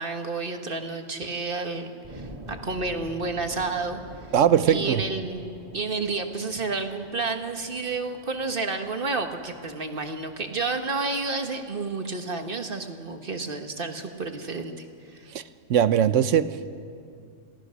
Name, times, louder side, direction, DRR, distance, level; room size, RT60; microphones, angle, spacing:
voice 1, 0.0-4.0 4.7-15.3, right 3 dB, 45° right, 1.5 m, -30 dB
sound 1, 2.0-12.8, right 1 dB, 25° right, 1.9 m, -47 dB
voice 2, 4.3-5.0 15.3-15.4 15.7-16.5, right 9 dB, 75° right, 1.1 m, -20 dB
27.5 x 17.5 x 6.4 m
omnidirectional pair, 1.3 m